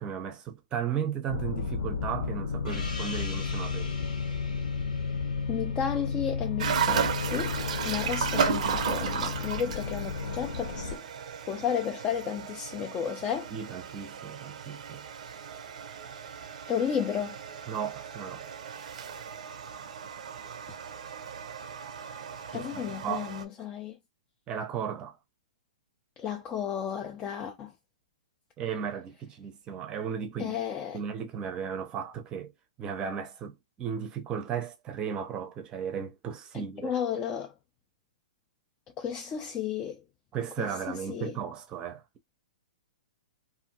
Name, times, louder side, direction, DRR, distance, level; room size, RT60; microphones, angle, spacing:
voice 1, 0.0-3.9 9.6-9.7 13.5-15.0 17.7-18.4 22.5-23.4 24.5-25.2 28.6-30.6 30.9-32.5 32.8-36.9 40.3-42.0, right 7 dB, 20° right, 0.6 m, -35 dB
sound 1, 1.3-11.0, left 5 dB, 65° left, 0.9 m, -33 dB
Gong, 2.7-7.7, left 3 dB, 90° left, 1.3 m, -44 dB
voice 2, 5.5-7.5 7.9-11.0 11.5-13.5 16.7-17.4 22.5-23.9 26.2-27.7 30.4-31.0 36.5-37.5 39.0-40.0 40.6-40.7 41.1-41.3, left 8 dB, 20° left, 0.4 m, -33 dB
sound 2, 6.6-23.4, right 7 dB, 65° right, 0.5 m, -35 dB
2.7 x 2.5 x 2.7 m
hypercardioid pair, 145°, 4 cm